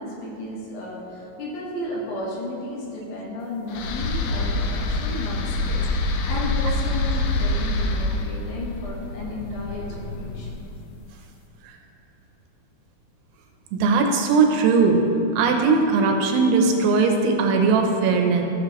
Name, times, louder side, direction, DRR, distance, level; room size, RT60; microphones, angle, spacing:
voice 1, 0.0-10.7, left 1 dB, 65° left, -5 dB, 2.8 m, -33 dB
sound 1, 3.7-10.9, left 2 dB, 85° left, 2.1 m, -26 dB
voice 2, 13.7-15.0 15.4-18.4, right 4 dB, 90° right, 3 dB, 2.9 m, -19 dB
13.5 x 6.9 x 3.0 m, 2.8 s
omnidirectional pair, 4.6 m